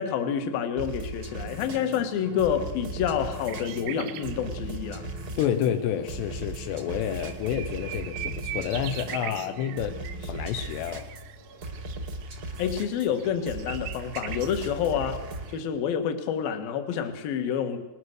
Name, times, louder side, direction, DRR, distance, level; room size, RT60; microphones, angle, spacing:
voice 1, 0.0-5.1 12.6-15.2 15.5-17.9, left 8 dB, 65° left, 7 dB, 3.0 m, -28 dB
sound 1, 0.8-15.5, right 1 dB, 50° right, 1.0 m, -38 dB
sound 2, 1.4-10.3, right 3 dB, 5° right, 1.0 m, -45 dB
sound 3, 3.5-4.4 5.8-5.9 6.4-6.5 6.7-15.6, right 12 dB, 85° right, 3.1 m, -41 dB
voice 2, 5.4-11.1, left 9 dB, 80° left, 7 dB, 3.0 m, -29 dB
20.5 x 20.0 x 6.6 m, 1.1 s
omnidirectional pair, 5.0 m